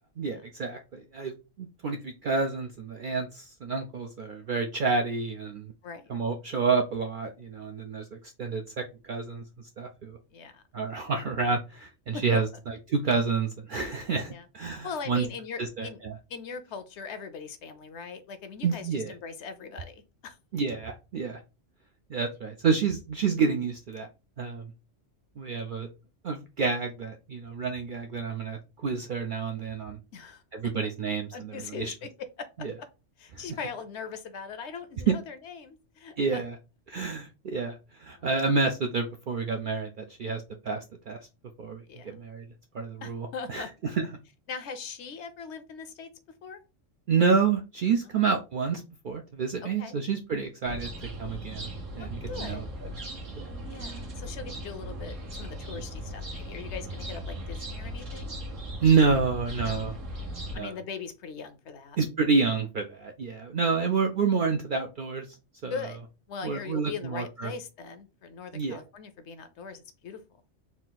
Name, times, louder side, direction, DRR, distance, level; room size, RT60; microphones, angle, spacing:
voice 1, 0.2-5.7 6.1-9.4 9.8-10.2 10.7-15.3 15.6-16.1 18.6-19.1 20.5-21.4 22.1-24.1 24.4-24.7 25.4-25.9 26.2-30.0 30.5-31.9 32.6-32.7 33.3-33.4 35.1-35.2 36.2-36.6 36.9-41.2 41.6-42.4 42.7-44.1 47.1-50.9 51.2-51.7 51.9-52.6 53.3-53.5 58.8-59.9 60.5-60.7 62.0-65.3 65.6-65.7 66.4-67.5 68.5-68.8, right 5 dB, 65° right, 5 dB, 0.5 m, -29 dB
voice 2, 10.3-10.6 12.1-12.2 14.3-16.0 16.3-20.4 30.1-30.4 31.3-32.1 32.4-32.9 33.2-36.4 38.2-38.3 41.9-42.2 43.0-43.7 44.5-46.1 46.4-46.6 48.0-48.1 49.6-50.0 52.0-52.7 53.7-58.3 59.6-59.8 60.5-62.0 65.7-66.0 66.3-70.2, left 5 dB, 65° left, 10 dB, 0.9 m, -40 dB
sound 1, 50.6-60.6, equal, 85° right, 1.7 m, -38 dB
4.2 x 2.4 x 3.8 m, 0.29 s
omnidirectional pair, 1.3 m